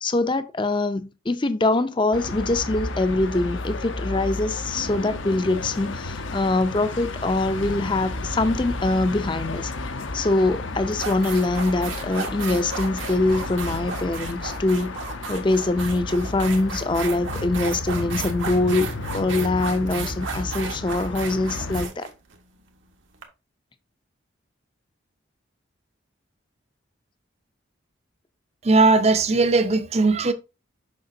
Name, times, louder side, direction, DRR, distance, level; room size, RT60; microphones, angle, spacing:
voice 1, 0.0-9.7 10.1-14.9 15.3-18.9 19.1-22.1, left 2 dB, 25° left, 0.5 m, -23 dB
sound 1, 2.1-21.9, left 2 dB, 80° left, 0.8 m, -32 dB
sound 2, 10.3-10.5 10.9-23.2, right 5 dB, 80° right, 1.2 m, -34 dB
voice 2, 28.6-30.3, right 3 dB, 35° right, 0.5 m, -18 dB
6.7 x 5.8 x 2.7 m
head